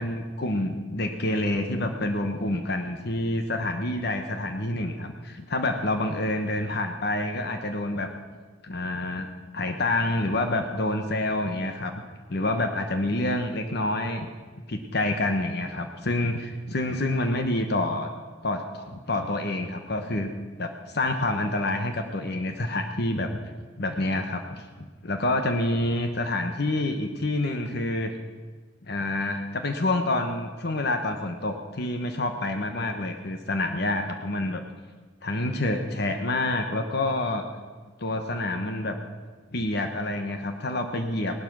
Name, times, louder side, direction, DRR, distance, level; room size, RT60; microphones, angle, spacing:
voice 1, 0.0-8.1 8.6-9.3 9.5-11.9 12.3-14.3 14.7-18.1 18.4-20.3 20.6-23.4 23.8-28.1 28.9-34.6 35.2-37.4 38.0-39.0 39.5-41.4, left 1 dB, 60° left, 6 dB, 1.1 m, -27 dB
18.0 x 12.0 x 6.1 m, 1.4 s
head